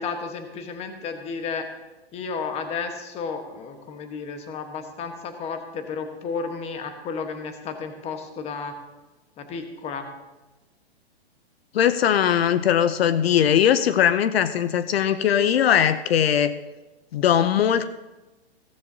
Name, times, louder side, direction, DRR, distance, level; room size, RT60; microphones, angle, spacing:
voice 1, 0.0-1.7 2.1-8.8 9.4-10.1, left 5 dB, 20° left, 7 dB, 1.2 m, -32 dB
voice 2, 11.7-16.5 17.1-17.9, left 9 dB, 70° left, 13 dB, 0.6 m, -20 dB
15.5 x 14.0 x 2.7 m, 1.1 s
hypercardioid pair, 145°, 32 cm